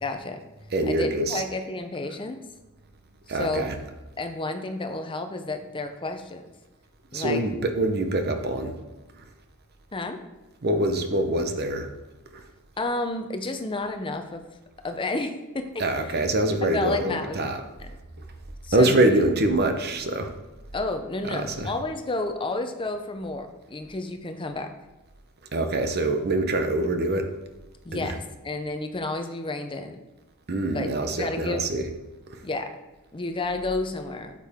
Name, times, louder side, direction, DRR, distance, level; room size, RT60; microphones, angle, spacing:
voice 1, 0.0-0.4 0.9-2.4 3.3-3.7 4.2-6.4 7.1-7.4 9.9-10.2 12.8-14.4 14.8-16.1 16.6-17.4 17.8-17.9 18.6-19.3 20.7-24.7 27.8-30.0 30.7-30.9 31.2-31.6 32.4-32.7 33.1-34.3, left 2 dB, 25° left, 6 dB, 0.6 m, -31 dB
voice 2, 0.7-1.4 3.3-3.7 7.1-8.8 10.6-11.9 12.3-12.4 15.8-17.6 18.7-20.3 21.3-21.7 25.5-27.3 27.9-28.1 30.5-31.9, right 1 dB, 45° right, 6 dB, 0.9 m, -24 dB
8.6 x 7.5 x 3.6 m, 1.1 s
head